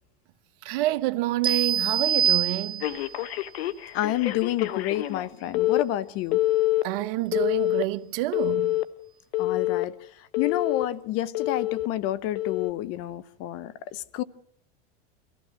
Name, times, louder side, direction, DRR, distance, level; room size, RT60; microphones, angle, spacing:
voice 1, 0.6-2.8 6.8-8.7, right 17 dB, 65° right, 1.1 m, -28 dB
sound 1, 1.4-3.2, right 8 dB, 15° right, 0.8 m, -25 dB
Telephone, 2.8-5.3 5.5-5.8 6.3-6.8 7.3-7.8 8.3-8.8 9.3-9.8 10.3-10.9 11.3-11.9 12.4-12.7, left 16 dB, 80° left, 1.1 m, -26 dB
voice 2, 3.9-6.4 9.4-9.9 10.4-14.2, left 13 dB, 50° left, 0.9 m, -29 dB
24.5 x 15.0 x 7.7 m
supercardioid pair, 115°, 31 cm